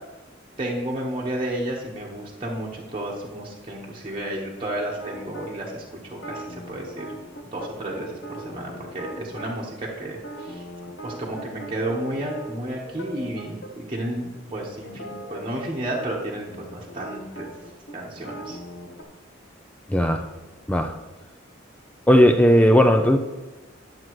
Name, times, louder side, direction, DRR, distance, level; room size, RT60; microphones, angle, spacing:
voice 1, 0.6-7.1 7.4-10.6 11.0-17.5 17.9-18.6, right 1 dB, 25° right, -4 dB, 1.1 m, -32 dB
sound 1, 5.0-5.5 6.1-9.5 10.1-13.7 14.0-14.2 14.5-19.0, right 1 dB, 65° left, 1.1 m, -39 dB
voice 2, 19.9-20.3 20.7-21.0 22.1-23.2, equal, 5° left, 6 dB, 0.3 m, -16 dB
11.5 x 7.4 x 3.1 m, 1.1 s
head